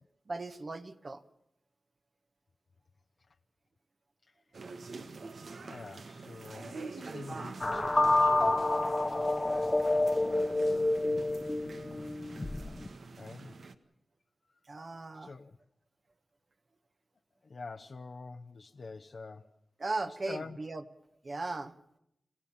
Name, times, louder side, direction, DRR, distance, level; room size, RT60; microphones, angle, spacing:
voice 1, 0.3-1.2 14.7-15.3 19.8-20.8 21.2-21.7, right 2 dB, 50° right, 7 dB, 1.5 m, -37 dB
sound 1, 4.5-13.7, right 4 dB, 75° right, 1.6 m, -46 dB
voice 2, 5.6-8.6 13.2-13.5 14.5-14.6 15.1-15.6 17.4-19.5 20.1-20.6, left 4 dB, 65° left, 3 dB, 1.0 m, -46 dB
sound 2, 7.6-12.9, left 2 dB, 30° left, 0.9 m, -28 dB
27.5 x 16.0 x 7.3 m, 0.79 s
cardioid pair, 65°, 0 cm